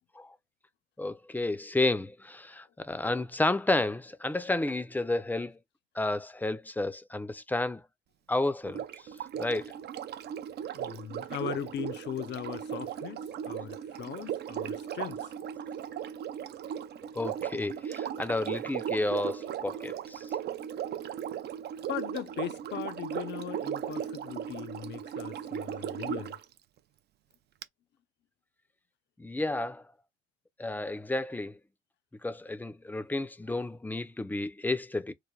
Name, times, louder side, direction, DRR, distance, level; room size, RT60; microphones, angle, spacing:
voice 1, 1.0-5.6 6.0-7.8 8.3-8.8 9.4-9.7 17.1-20.3 29.2-29.8 30.6-31.6 32.2-35.1, left 2 dB, 10° left, 0.4 m, -31 dB
Sink (filling or washing), 8.6-26.4 27.6-27.7, right 9 dB, 55° right, 0.4 m, -37 dB
voice 2, 10.7-15.3 21.9-26.4, left 10 dB, 60° left, 0.5 m, -39 dB
3.2 x 2.1 x 2.2 m
cardioid pair, 90°, 20 cm